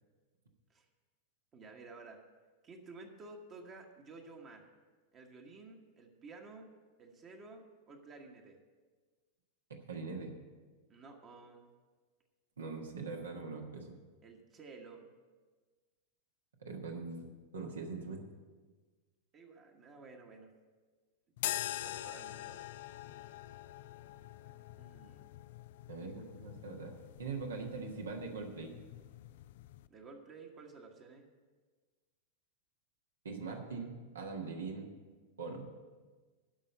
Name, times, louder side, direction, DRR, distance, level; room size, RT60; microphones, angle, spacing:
voice 1, 1.5-2.2 2.6-4.7 5.1-6.7 7.0-8.6 10.9-11.7 14.2-15.1 19.3-20.5 21.3-21.4 21.7-22.6 24.8-25.3 29.9-31.3, right 3 dB, 30° right, 2 dB, 1.3 m, -53 dB
voice 2, 9.9-10.4 12.6-14.0 16.6-18.2 25.9-28.7 33.2-34.9 35.4-35.7, right 4 dB, 70° right, 2 dB, 1.4 m, -42 dB
sound 1, 21.4-29.9, left 14 dB, 55° left, 0.3 m, -44 dB
12.0 x 5.5 x 8.6 m, 1.4 s
figure-of-eight pair, 90°, 0 cm